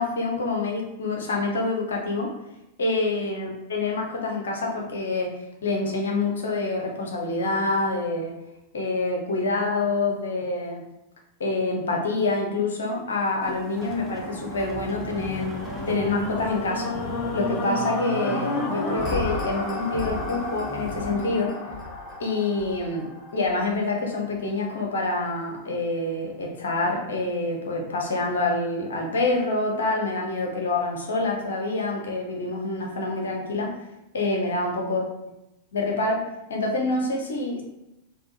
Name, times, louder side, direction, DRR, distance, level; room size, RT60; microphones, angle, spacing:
voice 1, 0.0-2.3 2.8-5.3 5.6-8.4 8.7-10.8 11.4-15.5 15.9-17.0 17.3-21.6 22.2-33.8 34.1-35.0 35.7-36.2 36.5-37.6, left 2 dB, 65° left, 0 dB, 0.7 m, -26 dB
sound 1, 13.4-21.1, right 1 dB, 10° right, 0.8 m, -39 dB
sound 2, 13.9-24.2 24.8-24.9, left 2 dB, 35° left, 0.9 m, -32 dB
3.4 x 2.3 x 3.0 m, 0.90 s
figure-of-eight pair, 90°, 0 cm